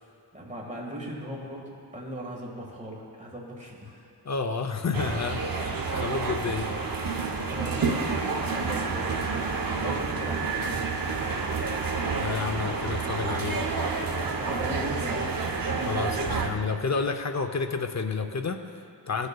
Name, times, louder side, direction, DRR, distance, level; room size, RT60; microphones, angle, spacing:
voice 1, 0.3-4.1 5.9-6.0 7.5-7.9 8.5-9.4 9.8-10.9 14.3-15.3, right 1 dB, 15° right, -3 dB, 1.6 m, -38 dB
voice 2, 4.2-5.7 6.0-6.7 12.2-13.6 15.8-19.3, left 4 dB, 40° left, 6 dB, 0.6 m, -30 dB
sound 1, 4.9-16.5, right 4 dB, 55° right, 0.7 m, -29 dB
15.5 x 6.4 x 2.3 m, 2.8 s
wide cardioid pair, 75°, 42 cm